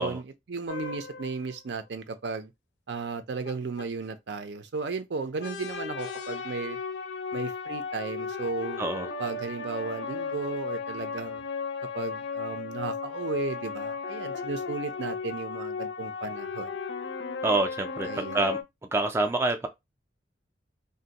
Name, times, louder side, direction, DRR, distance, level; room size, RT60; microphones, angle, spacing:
voice 1, 0.0-2.5 2.9-6.8 7.3-8.8 9.2-11.4 11.9-16.7 18.0-18.5, right 4 dB, 75° right, 0.5 m, -35 dB
sound 1, 0.7-1.6 3.5-3.6 3.8-3.9 4.1-4.2 4.4-4.5 5.4-18.6, left 5 dB, 70° left, 0.5 m, -35 dB
voice 2, 17.4-18.6 18.9-19.7, right 2 dB, 15° right, 0.3 m, -27 dB
2.6 x 2.1 x 4.0 m
head